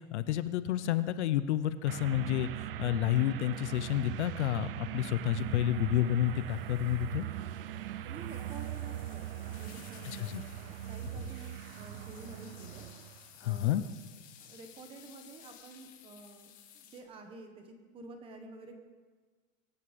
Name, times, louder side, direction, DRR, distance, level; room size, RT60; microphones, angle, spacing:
voice 1, 0.1-2.5 2.8-7.3 10.0-10.4 13.4-13.8, left 12 dB, 55° left, 14 dB, 0.7 m, -30 dB
sound 1, 1.9-13.3, right 12 dB, 45° right, 0.6 m, -40 dB
sound 2, 5.3-17.0, left 10 dB, 20° left, 1.1 m, -57 dB
voice 2, 8.0-12.9 13.4-13.9 14.4-18.8, right 3 dB, 15° right, 5 dB, 1.1 m, -50 dB
24.0 x 9.9 x 5.2 m, 1.5 s
supercardioid pair, 175°, 40 cm